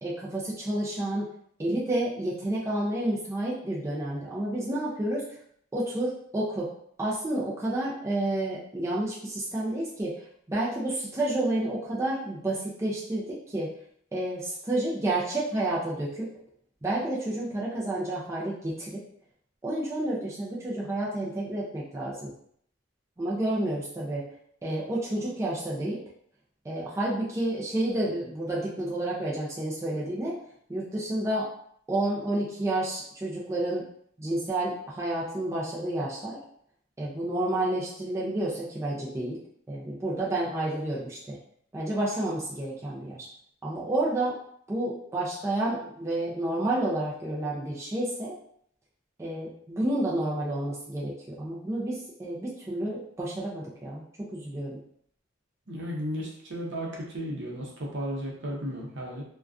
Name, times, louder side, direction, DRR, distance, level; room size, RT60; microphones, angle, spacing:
voice 1, 0.0-1.3 1.6-5.3 5.7-6.7 7.0-13.7 14.1-16.3 16.8-19.0 19.6-22.3 23.2-24.2 24.6-26.0 26.6-30.4 30.7-31.5 31.9-33.8 34.2-36.4 37.0-39.4 39.7-41.4 41.7-43.3 43.6-44.4 44.7-48.4 49.2-54.0 54.3-54.8, right 1 dB, 15° right, -6 dB, 0.3 m, -30 dB
voice 2, 55.7-59.2, equal, 65° right, -2 dB, 0.7 m, -34 dB
2.4 x 2.2 x 2.3 m, 0.66 s
head